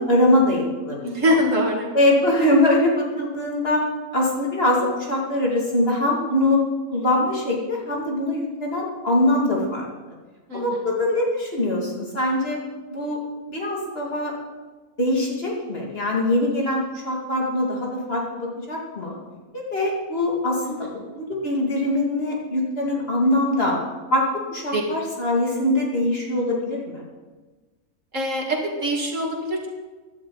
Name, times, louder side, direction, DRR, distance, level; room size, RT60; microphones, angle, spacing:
voice 1, 0.0-1.3 1.9-3.8 4.1-6.6 6.9-9.9 10.5-12.6 12.9-13.2 13.5-14.3 15.0-19.2 19.5-20.9 21.1-23.8 24.1-24.2 24.5-27.0, left 1 dB, 40° left, -3 dB, 2.6 m, -22 dB
voice 2, 1.0-1.9 10.5-10.8 20.6-21.0 24.7-24.8 28.1-29.7, equal, 55° right, 0 dB, 2.3 m, -24 dB
16.5 x 11.0 x 4.0 m, 1.3 s
omnidirectional pair, 1.6 m